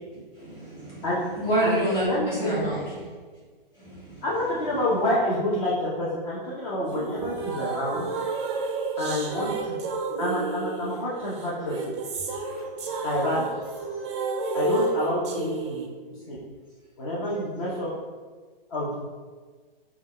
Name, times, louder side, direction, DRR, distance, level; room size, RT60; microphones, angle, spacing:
voice 1, 0.1-1.0 1.3-3.0 3.7-4.2 7.9-8.0, right 1 dB, 15° left, -10 dB, 1.5 m, -28 dB
voice 2, 1.6-2.7 4.2-8.0 9.0-9.8 10.2-11.9 12.5-12.6 13.0-13.5 14.5-15.8 16.1-16.4 17.0-17.9 18.7-19.0, left 1 dB, 35° left, -7 dB, 0.7 m, -28 dB
sound 1, 6.9-15.9, right 3 dB, 30° right, 0.4 m, -31 dB
3.7 x 2.3 x 3.2 m, 1.5 s
hypercardioid pair, 150°, 29 cm